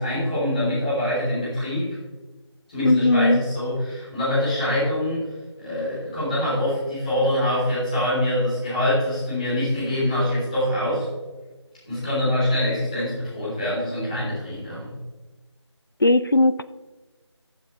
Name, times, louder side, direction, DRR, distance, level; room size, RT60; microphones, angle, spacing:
voice 1, 0.0-2.0 2.7-5.3 5.6-11.1 11.9-14.9, left 1 dB, 15° left, -9 dB, 3.5 m, -24 dB
voice 2, 2.8-3.4 16.0-16.6, left 2 dB, 50° left, 15 dB, 0.4 m, -18 dB
14.5 x 7.5 x 3.2 m, 1.2 s
figure-of-eight pair, 170°, 15 cm